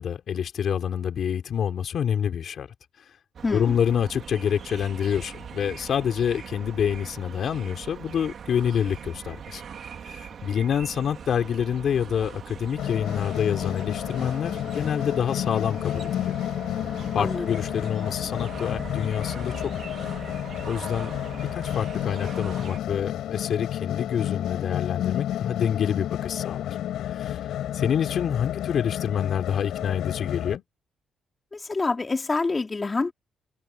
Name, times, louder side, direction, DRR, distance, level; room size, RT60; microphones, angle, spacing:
voice 1, 0.0-2.7 3.5-9.6 10.1-16.4 17.1-20.0 20.7-26.7 27.1-27.4 27.7-30.6, left 8 dB, 60° left, 3.8 m, -27 dB
sound 1, 3.3-22.8, right 7 dB, 55° right, 4.4 m, -41 dB
voice 2, 3.4-3.8 17.2-17.6 31.5-33.1, left 3 dB, 25° left, 3.5 m, -27 dB
sound 2, 12.8-30.6, left 12 dB, 80° left, 7.1 m, -31 dB
open air
cardioid pair, 110°, 0 cm